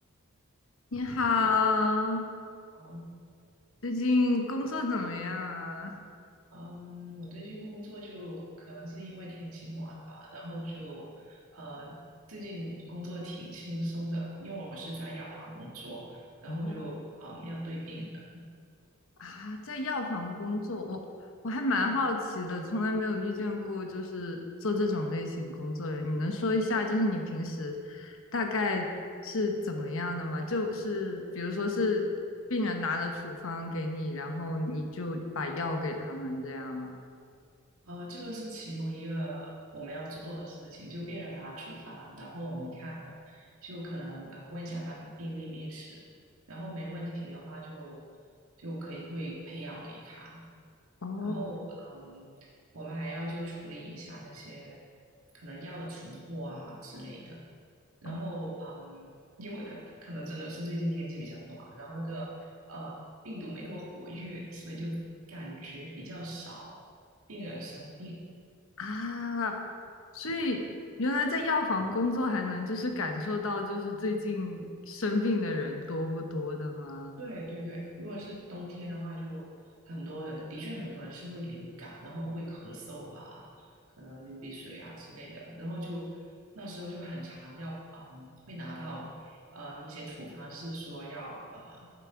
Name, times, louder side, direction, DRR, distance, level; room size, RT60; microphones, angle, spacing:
voice 1, 0.9-2.3 3.8-6.0 16.5-16.7 19.2-21.0 21.4-28.9 29.2-32.1 32.5-37.0 51.0-51.4 58.0-58.2 68.8-69.6 70.1-70.6 71.0-77.2, left 2 dB, 70° left, 4 dB, 1.1 m, -31 dB
voice 2, 2.7-3.1 6.5-12.0 12.3-18.4 21.9-22.0 37.8-46.0 46.5-48.0 48.6-50.4 51.2-54.8 55.3-57.4 58.0-59.1 59.4-65.0 65.3-66.8 67.3-68.2 77.2-79.5 79.9-83.7 84.0-86.2 86.6-91.9, equal, 80° right, -4 dB, 1.9 m, -40 dB
9.5 x 7.5 x 4.9 m, 2.2 s
head